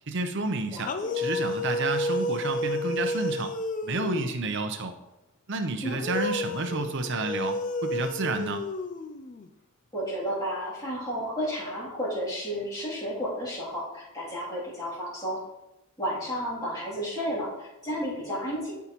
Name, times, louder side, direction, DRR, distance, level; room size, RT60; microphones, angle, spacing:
voice 1, 0.1-3.5 3.8-4.9 5.5-8.6, right 3 dB, 55° right, 7 dB, 0.7 m, -30 dB
voice 2, 0.7-1.1 5.8-6.1 9.9-15.4 16.0-18.7, equal, 15° left, -9 dB, 2.7 m, -32 dB
sound 1, 0.8-4.5 5.9-9.5, left 2 dB, 35° left, 0.4 m, -31 dB
12.0 x 4.8 x 3.0 m, 0.94 s
head